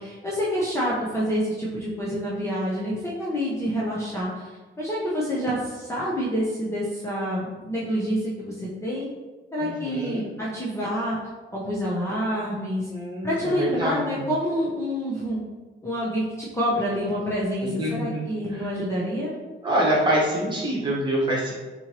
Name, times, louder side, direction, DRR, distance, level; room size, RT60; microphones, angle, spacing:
voice 1, 0.0-4.5 4.8-9.1 9.5-11.2 11.5-12.9 13.2-15.4 15.8-19.3, equal, 15° left, -7 dB, 0.6 m, -27 dB
voice 2, 9.6-10.2 12.8-14.3 17.6-18.6 19.6-21.5, right 1 dB, 20° right, -5 dB, 1.2 m, -26 dB
4.2 x 2.9 x 2.9 m, 1.2 s
cardioid pair, 135°, 21 cm